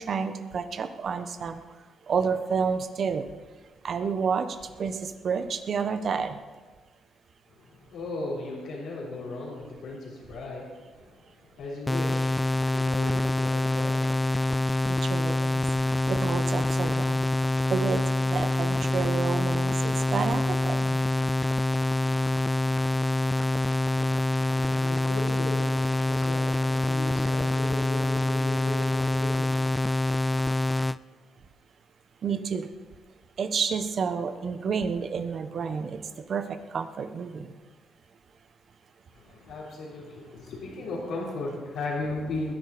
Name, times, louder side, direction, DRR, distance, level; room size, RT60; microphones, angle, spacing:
voice 1, 0.0-1.6 2.1-3.2 3.8-6.4 14.9-15.6 16.1-17.2 17.7-18.0 18.3-21.0 32.2-32.7 33.4-36.0 36.3-37.5, right 6 dB, 55° right, 10 dB, 1.1 m, -30 dB
voice 2, 7.6-14.4 23.7-29.9 39.1-42.5, left 2 dB, 80° left, -8 dB, 3.7 m, -37 dB
sound 1, 11.9-31.0, left 2 dB, 10° left, 0.3 m, -26 dB
20.0 x 11.0 x 4.2 m, 1.4 s
cardioid pair, 90°, 0 cm